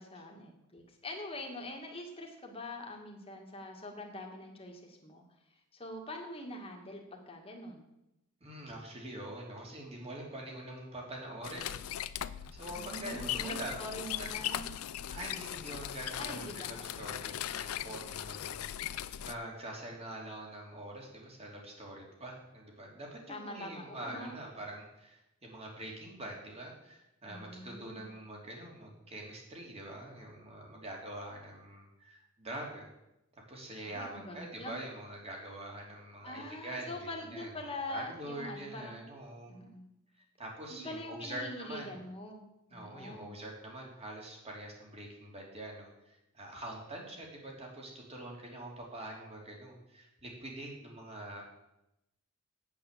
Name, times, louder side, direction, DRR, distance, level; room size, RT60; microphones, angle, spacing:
voice 1, 0.0-5.2 5.7-7.9 12.7-14.8 16.2-17.1 23.3-24.3 27.3-28.1 33.8-34.7 36.2-39.0 39.5-39.9 40.7-42.4 42.7-43.3, left 1 dB, 25° left, 1 dB, 2.1 m, -44 dB
voice 2, 8.4-11.8 12.2-13.8 14.2-14.3 15.1-19.0 19.2-32.9 33.5-39.5 40.4-41.9 42.7-51.4, right 1 dB, 30° right, -1 dB, 3.0 m, -44 dB
sound 1, 11.4-19.3, left 11 dB, 80° left, 0.5 m, -39 dB
8.6 x 8.6 x 7.5 m, 0.89 s
head